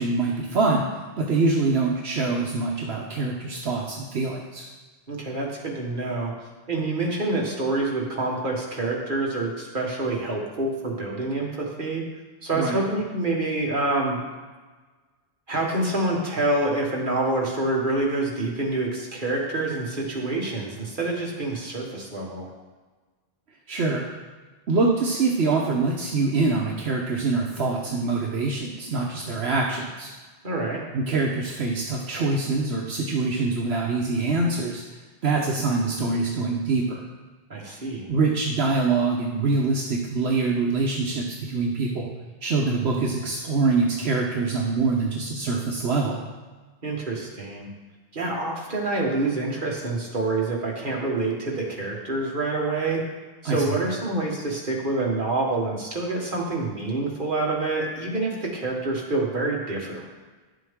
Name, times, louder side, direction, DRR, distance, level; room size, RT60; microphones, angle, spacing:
voice 1, 0.0-4.6 12.5-12.8 23.7-24.1 24.7-30.1 30.9-34.8 35.2-37.0 38.1-42.1 42.4-46.2 53.4-53.8, right 3 dB, 70° right, -1 dB, 1.1 m, -24 dB
voice 2, 5.1-6.3 6.7-12.0 12.4-14.2 15.5-22.5 30.4-30.8 37.5-38.1 46.8-47.7 48.1-53.0 53.4-60.1, right 2 dB, 50° right, -2 dB, 1.7 m, -27 dB
10.5 x 7.4 x 3.6 m, 1.3 s
omnidirectional pair, 1.1 m